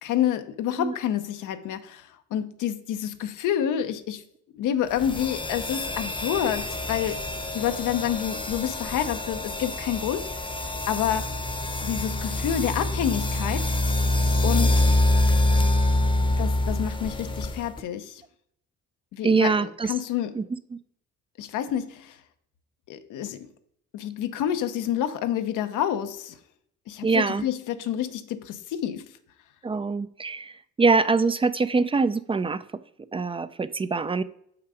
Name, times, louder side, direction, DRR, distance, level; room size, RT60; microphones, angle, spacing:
voice 1, 0.0-4.2 4.5-7.2 7.5-10.5 10.9-11.3 11.8-13.6 14.4-14.8 16.4-18.2 19.1-20.4 21.4-22.2 22.9-23.5 23.9-26.4 26.9-29.1, left 10 dB, 85° left, 0.8 m, -28 dB
sound 1, 4.9-17.8, left 1 dB, 15° left, 0.8 m, -26 dB
voice 2, 19.2-19.9 20.4-20.5 27.0-27.4 29.6-30.5 30.8-32.6 33.1-34.2, right 4 dB, 20° right, 0.3 m, -23 dB
6.6 x 5.9 x 4.9 m
cardioid pair, 90°, 30 cm